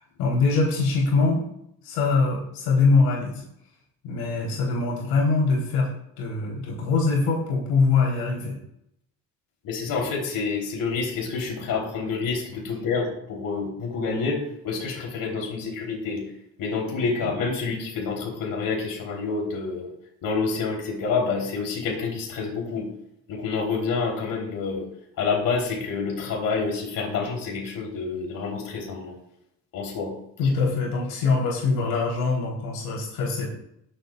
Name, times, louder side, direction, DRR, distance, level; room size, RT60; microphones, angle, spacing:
voice 1, 0.2-1.4 1.8-3.4 4.0-5.9 6.2-8.6 30.4-33.5, left 4 dB, 90° left, -2 dB, 3.5 m, -23 dB
voice 2, 9.6-16.2 16.6-19.9 20.2-22.9 23.3-24.9 25.2-29.1 29.7-30.1 30.4-30.5, left 4 dB, 70° left, -1 dB, 3.3 m, -28 dB
19.5 x 7.9 x 2.3 m, 0.74 s
cardioid pair, 105°, 35 cm